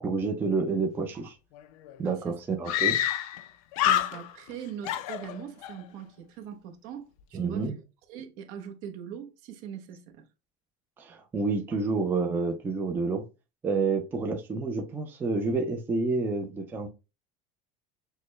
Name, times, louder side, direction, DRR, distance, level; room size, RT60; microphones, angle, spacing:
voice 1, 0.0-1.3 2.0-3.0 7.3-7.8 11.0-13.2 13.6-16.9, right 4 dB, 10° right, 0.4 m, -29 dB
Screaming, 1.6-1.7 1.9-2.0 2.7-3.5 3.7-4.5 4.8-5.8, left 11 dB, 90° left, 0.5 m, -27 dB
voice 2, 2.0-2.4 3.8-7.7 8.1-10.2, right 8 dB, 55° right, 0.9 m, -41 dB
6.4 x 2.1 x 3.1 m
cardioid pair, 170°, 17 cm